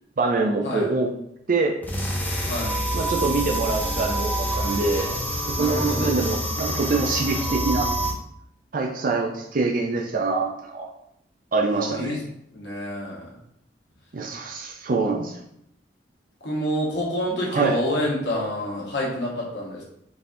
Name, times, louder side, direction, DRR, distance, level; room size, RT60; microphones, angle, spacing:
voice 1, 0.2-1.1 1.5-1.8 2.9-5.1 5.3-7.9 8.7-10.9 11.5-12.2 14.1-15.4 17.4-17.8, right 3 dB, 50° right, 1 dB, 0.5 m, -25 dB
sound 1, 1.8-8.1, right 1 dB, 10° left, 0.6 m, -27 dB
voice 2, 2.5-2.8 5.6-6.2 11.6-12.2 12.5-13.3 16.4-19.8, left 1 dB, 85° left, -4 dB, 1.2 m, -28 dB
4.0 x 2.7 x 3.7 m, 0.75 s
head